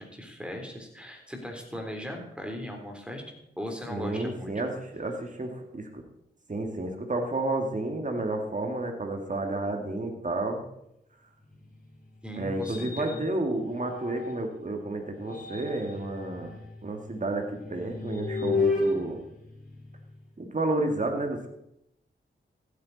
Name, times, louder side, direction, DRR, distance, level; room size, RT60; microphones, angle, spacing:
voice 1, 0.0-3.2 3.6-4.6 12.2-13.3, equal, 5° right, 2 dB, 3.5 m, -38 dB
voice 2, 3.9-6.0 6.5-10.6 12.3-16.6 16.8-19.2 20.4-21.5, right 2 dB, 40° right, 3 dB, 2.2 m, -31 dB
sound 1, 11.4-14.6 15.1-20.3, left 3 dB, 40° left, 5.1 m, -34 dB
15.0 x 9.2 x 4.2 m, 0.78 s
cardioid pair, 50°, 20 cm